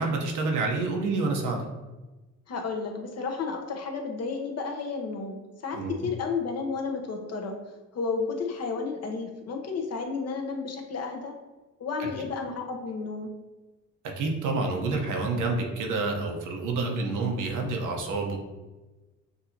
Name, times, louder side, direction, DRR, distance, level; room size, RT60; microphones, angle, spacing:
voice 1, 0.0-1.6 5.7-5.9 14.0-18.4, right 3 dB, 80° right, 2 dB, 0.9 m, -28 dB
voice 2, 2.5-7.6 7.9-11.3 11.8-13.3, left 4 dB, 55° left, 2 dB, 0.9 m, -32 dB
6.6 x 2.7 x 2.8 m, 1.1 s
cardioid pair, 90°, 30 cm